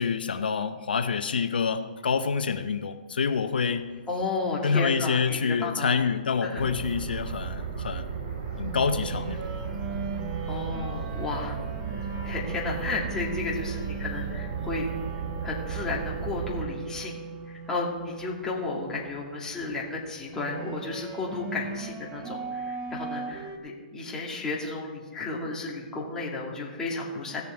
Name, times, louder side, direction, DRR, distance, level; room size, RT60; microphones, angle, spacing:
voice 1, 0.0-3.9 4.6-8.1 8.6-9.6, left 5 dB, 85° left, 9 dB, 0.6 m, -27 dB
sound 1, 3.7-23.6, right 4 dB, 25° right, 1.2 m, -39 dB
voice 2, 4.1-5.9 6.4-6.6 10.5-11.6 11.9-14.9 15.4-17.1 17.5-27.4, left 3 dB, 10° left, -4 dB, 2.3 m, -33 dB
sound 2, 6.6-16.6, right 6 dB, 55° right, 2.9 m, -34 dB
16.5 x 7.0 x 4.4 m, 1.4 s
hypercardioid pair, 145°, 5 cm